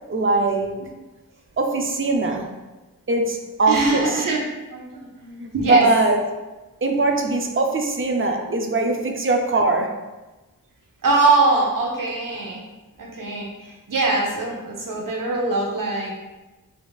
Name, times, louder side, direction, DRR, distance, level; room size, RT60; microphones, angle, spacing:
voice 1, 0.1-0.8 1.6-2.5 3.1-4.2 5.4-6.2 6.8-10.0, right 3 dB, 35° right, 3 dB, 0.6 m, -21 dB
voice 2, 3.7-4.4 4.7-5.9 8.5-8.6 11.0-12.6 13.0-16.1, right 3 dB, 65° right, -2 dB, 1.0 m, -22 dB
5.3 x 2.7 x 2.3 m, 1.1 s
wide cardioid pair, 65°, 34 cm